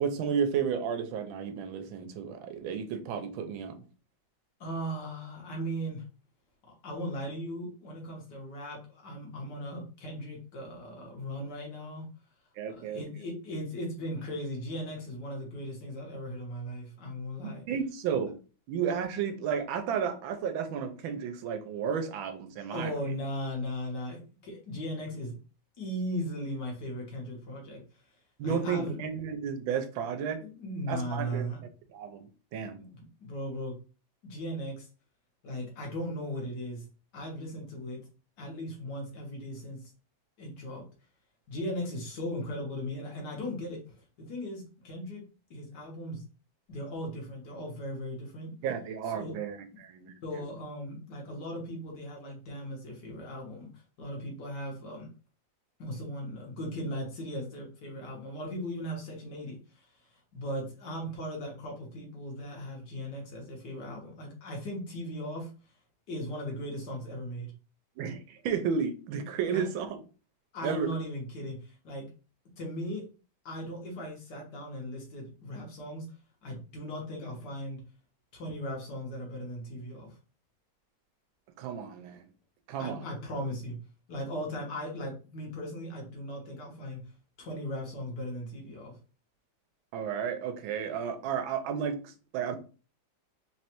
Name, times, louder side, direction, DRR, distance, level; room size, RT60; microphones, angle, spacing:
voice 1, 0.0-3.8 12.6-13.0 17.4-18.3 18.7-22.9 28.4-30.4 30.9-31.5 31.9-32.8 48.6-50.4 68.0-70.0 70.6-70.9 81.6-82.3 82.7-83.0 89.9-92.6, right 7 dB, 85° right, 1.4 m, -32 dB
voice 2, 4.6-6.0 6.8-12.0 12.8-17.6 22.6-25.3 25.8-27.8 28.4-29.0 30.4-31.6 32.8-33.7 34.2-34.9 35.4-36.8 37.1-38.0 38.4-39.8 40.4-40.8 41.5-43.8 44.3-45.2 45.5-46.2 46.7-48.5 49.1-49.3 50.2-53.7 54.0-55.1 55.8-59.6 60.3-65.5 66.1-67.5 69.5-69.7 70.5-72.1 72.6-73.0 73.4-76.1 76.4-77.8 78.3-80.1 82.8-83.8 84.1-87.0 87.4-88.9, equal, 60° left, 1.7 m, -37 dB
3.9 x 3.1 x 2.9 m
omnidirectional pair, 2.1 m